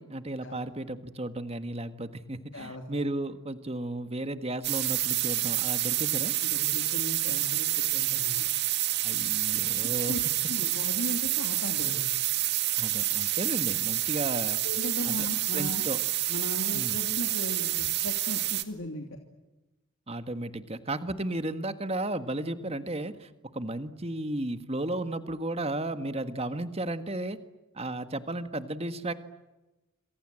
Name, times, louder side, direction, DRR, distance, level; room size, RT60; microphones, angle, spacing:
voice 1, 0.0-6.3 9.0-10.2 12.8-14.6 15.0-15.3 15.5-16.0 16.7-17.0 20.1-27.4 27.7-29.1, right 1 dB, 30° right, 10 dB, 1.6 m, -34 dB
voice 2, 2.5-3.0 6.4-8.5 10.0-10.2 10.5-12.1 14.6-15.8 16.3-19.1, left 1 dB, 60° left, 3 dB, 2.9 m, -37 dB
sound 1, 4.6-18.6, right 14 dB, 50° right, 1.9 m, -28 dB
28.0 x 26.5 x 7.7 m, 1.1 s
head